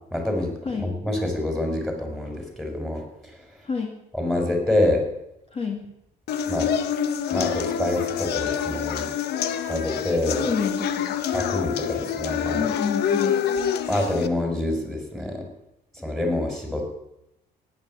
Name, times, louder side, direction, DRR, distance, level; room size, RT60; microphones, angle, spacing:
voice 1, 0.1-3.0 4.1-5.0 6.5-6.7 7.3-9.1 9.7-10.5 11.3-12.7 13.9-15.5 16.0-17.0, left 1 dB, ahead, 3 dB, 5.2 m, -26 dB
voice 2, 5.5-5.9 10.4-11.1 12.5-13.4, left 5 dB, 35° left, 2 dB, 2.5 m, -29 dB
sound 1, 6.3-14.3, left 8 dB, 75° left, 1.2 m, -26 dB
15.5 x 10.5 x 8.8 m, 0.85 s
cardioid pair, 110°, 17 cm